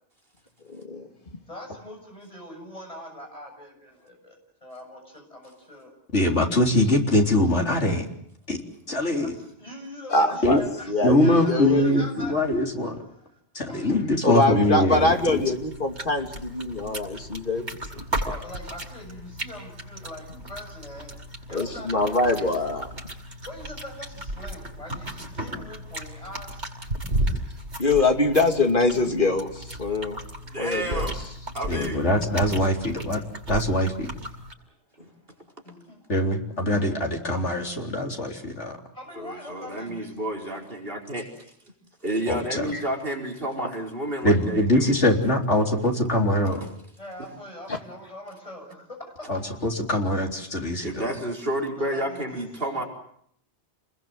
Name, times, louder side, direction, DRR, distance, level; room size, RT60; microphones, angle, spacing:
voice 1, 0.7-1.0 10.1-10.6 10.9-12.1 14.2-17.6 21.5-22.9 27.8-30.2 30.6-31.1 42.7-42.8 47.7-47.8, left 2 dB, 50° left, 4 dB, 2.8 m, -23 dB
voice 2, 1.5-5.9 9.2-12.6 12.9-13.4 13.7-14.0 18.2-21.1 21.5-22.5 23.4-26.7 35.6-36.0 38.9-40.1 47.0-49.3 51.7-52.9, left 1 dB, 30° left, 3 dB, 7.1 m, -42 dB
voice 3, 6.1-8.0 8.5-8.6 8.9-9.3 10.4-10.6 11.0-13.0 13.5-15.4 31.7-33.2 33.5-34.1 36.1-38.8 42.3-42.7 44.2-46.7 49.3-51.1, left 1 dB, 85° left, 1 dB, 4.2 m, -23 dB
sound 1, 15.0-34.5, right 1 dB, 80° right, 5.6 m, -35 dB
voice 4, 30.4-31.2 31.5-32.0 35.0-35.1 39.2-41.4 42.0-45.0 47.2-47.3 50.8-52.8, right 1 dB, 55° right, 2 dB, 5.1 m, -30 dB
29.0 x 21.0 x 7.7 m, 0.69 s
omnidirectional pair, 1.2 m